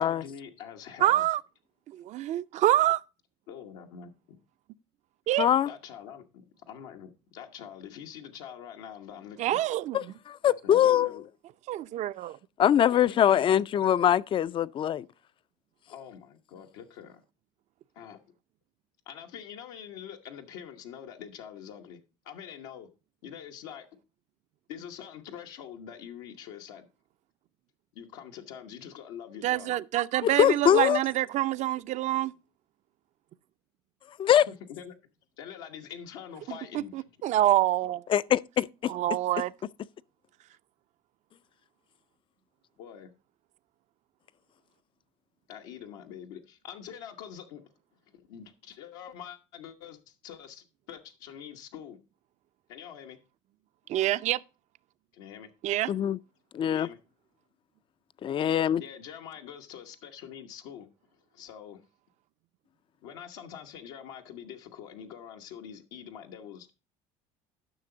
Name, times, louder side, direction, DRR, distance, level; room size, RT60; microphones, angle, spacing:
voice 1, 0.0-1.3 3.5-4.4 5.6-6.2 6.7-9.6 10.5-11.2 12.9-13.5 15.9-17.2 17.9-18.2 19.1-22.0 22.2-22.9 23.2-23.9 24.7-26.9 27.9-29.7 34.3-34.9 35.4-37.1 42.8-43.1 45.5-47.6 48.1-52.0 52.7-53.2 55.1-55.5 56.6-57.0 58.8-60.9 61.3-61.8 63.0-66.7, left 8 dB, 85° left, 1.1 m, -44 dB
voice 2, 1.0-1.4 1.9-3.0 5.3-5.5 9.4-10.0 11.7-12.4 29.4-32.3 37.2-38.0 38.9-39.5 53.9-54.4 55.6-55.9, right 14 dB, 50° right, 0.5 m, -26 dB
voice 3, 5.4-5.7 9.9-11.2 12.6-15.0 30.2-31.0 34.2-34.5 38.1-38.9 55.9-56.2 56.5-56.9 58.2-58.8, left 10 dB, 35° left, 0.4 m, -23 dB
11.0 x 6.0 x 3.8 m
supercardioid pair, 100°, 15 cm